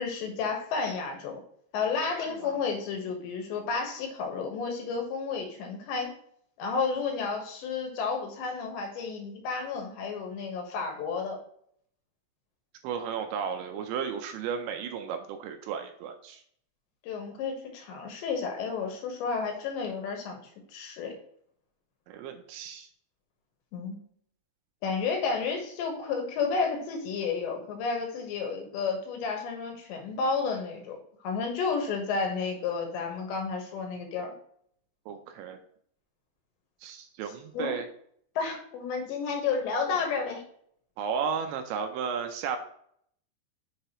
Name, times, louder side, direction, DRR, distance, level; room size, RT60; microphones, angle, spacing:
voice 1, 0.0-1.4 1.7-6.1 6.6-11.4 17.0-20.4 20.7-21.1 23.7-24.0 24.8-31.0 31.2-34.3 37.5-37.8 38.4-40.4, left 5 dB, 70° left, 3 dB, 3.3 m, -31 dB
voice 2, 2.2-2.5 12.8-16.4 22.1-22.9 35.1-35.6 36.8-37.9 41.0-42.6, right 7 dB, 80° right, 6 dB, 2.8 m, -34 dB
8.0 x 6.7 x 3.0 m, 0.65 s
omnidirectional pair, 5.6 m